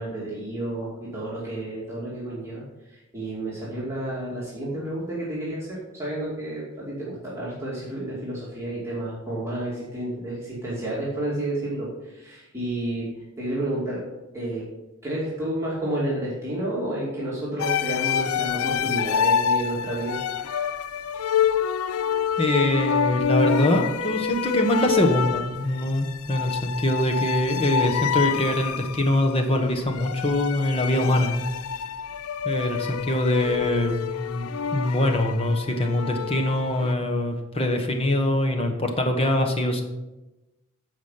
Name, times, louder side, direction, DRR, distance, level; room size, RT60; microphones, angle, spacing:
voice 1, 0.0-2.6 2.9-13.1 13.4-14.0 14.3-14.7 15.0-20.2, right 1 dB, 15° right, -7 dB, 2.5 m, -30 dB
sound 1, 17.6-36.9, left 7 dB, 90° left, 0.4 m, -27 dB
voice 2, 22.4-31.5 32.4-39.8, left 1 dB, 25° left, 4 dB, 1.2 m, -23 dB
14.5 x 5.1 x 5.7 m, 1.0 s
head